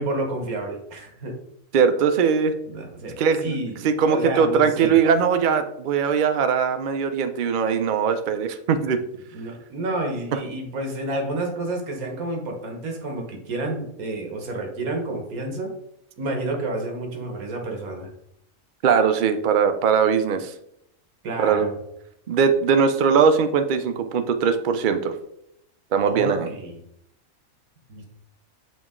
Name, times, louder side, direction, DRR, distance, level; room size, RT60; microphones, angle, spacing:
voice 1, 0.0-1.3 2.7-5.0 9.3-15.7 16.2-18.1 21.2-21.8 26.1-26.8 27.9-28.1, right 2 dB, 90° right, 2 dB, 1.6 m, -30 dB
voice 2, 1.7-2.5 3.2-3.6 3.8-9.0 18.8-20.5 21.4-21.7 22.3-25.1 25.9-26.5, right 6 dB, 65° right, 9 dB, 0.4 m, -20 dB
8.4 x 3.0 x 3.6 m, 0.77 s
omnidirectional pair, 1.5 m